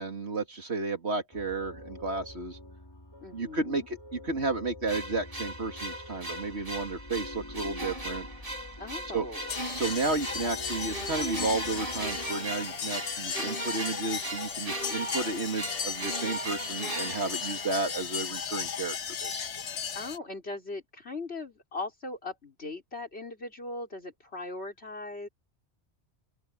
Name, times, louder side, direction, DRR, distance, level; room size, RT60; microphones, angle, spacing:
voice 1, 0.0-2.6 3.3-8.3 9.1-9.3 9.6-19.4, right 3 dB, 70° right, 3.0 m, -32 dB
sound 1, 1.3-12.3, left 1 dB, 20° left, 2.2 m, -47 dB
voice 2, 3.2-3.9 8.8-9.5 19.9-25.3, left 2 dB, 65° left, 4.6 m, -39 dB
sound 2, 4.9-18.1, right 1 dB, 55° right, 4.3 m, -38 dB
sound 3, 9.5-20.2, left 7 dB, 90° left, 1.4 m, -36 dB
open air
omnidirectional pair, 1.2 m